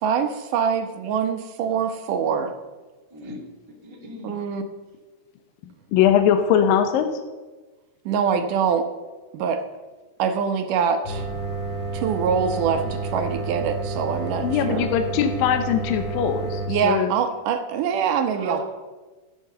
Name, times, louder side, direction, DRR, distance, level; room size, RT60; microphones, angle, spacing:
voice 1, 0.0-2.5 4.2-4.6 8.1-8.9 9.3-9.6 10.2-11.3 11.9-14.9 16.7-18.6, right 7 dB, 75° right, 7 dB, 2.6 m, -24 dB
voice 2, 3.1-3.4 3.8-4.4 18.4-18.6, right 2 dB, 10° right, -1 dB, 1.5 m, -36 dB
voice 3, 5.9-7.2 14.4-17.1, left 9 dB, 85° left, 7 dB, 2.6 m, -21 dB
sound 1, 11.0-16.7, right 3 dB, 15° left, 2.1 m, -30 dB
13.5 x 8.9 x 6.7 m, 1.2 s
omnidirectional pair, 3.9 m